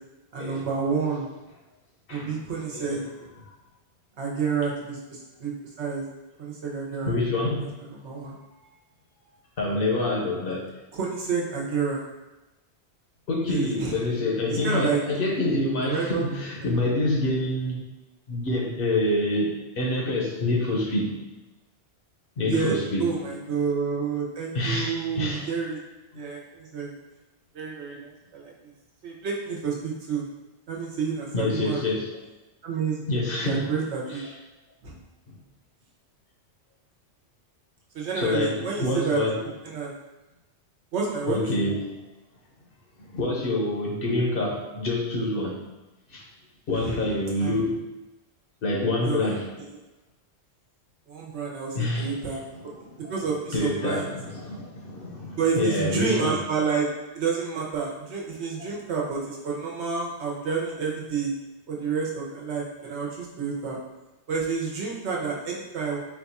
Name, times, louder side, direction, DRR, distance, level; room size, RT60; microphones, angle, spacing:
voice 1, 0.3-1.3 2.1-3.0 4.2-5.5 5.8-6.0 6.4-7.1 7.6-7.7 8.0-8.4 10.9-12.0 13.5-14.0 14.5-15.0 15.8-16.2 22.5-25.8 26.1-27.0 27.5-28.7 29.0-30.3 30.7-32.0 32.6-33.0 33.4-34.2 34.8-34.9 37.9-39.2 39.6-39.9 40.9-41.4 46.7-47.0 47.4-47.5 49.0-49.3 51.1-52.4 53.0-54.1 55.4-56.9 57.1-61.3 61.7-63.8 64.3-66.0, right 5 dB, 80° right, -2 dB, 1.2 m, -29 dB
voice 2, 7.0-7.7 9.6-10.7 13.3-17.8 18.3-21.2 22.4-23.1 24.5-25.5 26.1-26.2 31.3-32.1 33.1-33.7 34.1-34.3 35.3-35.4 38.1-39.4 41.3-41.8 43.0-45.6 46.1-46.3 46.7-47.8 48.6-49.5 51.7-53.1 53.5-56.4 58.6-58.7, left 2 dB, 60° left, -1 dB, 1.0 m, -27 dB
4.3 x 2.4 x 4.1 m, 1.1 s
omnidirectional pair, 1.1 m